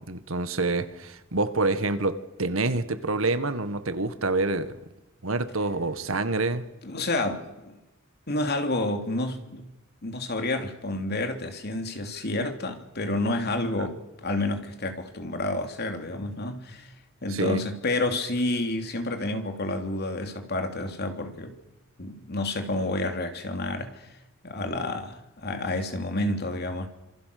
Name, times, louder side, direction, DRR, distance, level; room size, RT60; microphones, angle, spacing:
voice 1, 0.0-4.8 5.2-6.6 13.8-13.9 17.3-17.6, right 3 dB, 75° right, 1.8 m, -27 dB
voice 2, 6.8-7.8 8.3-9.6 10.0-16.9 17.2-21.6 22.0-24.0 24.4-26.9, left 2 dB, 55° left, 3.1 m, -29 dB
27.0 x 27.0 x 6.8 m
head